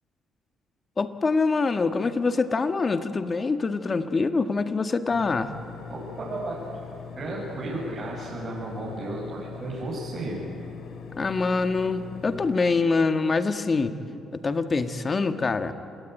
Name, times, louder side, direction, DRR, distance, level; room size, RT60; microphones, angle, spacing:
voice 1, 1.0-5.5 11.2-13.9 14.3-15.7, left 4 dB, 35° left, 8 dB, 1.7 m, -25 dB
sound 1, 5.1-12.5, left 7 dB, 70° left, 2.9 m, -42 dB
voice 2, 5.9-6.7 7.2-10.4, right 2 dB, 45° right, -5 dB, 7.1 m, -34 dB
27.5 x 19.0 x 9.4 m, 2.6 s
cardioid pair, 90°, 0 cm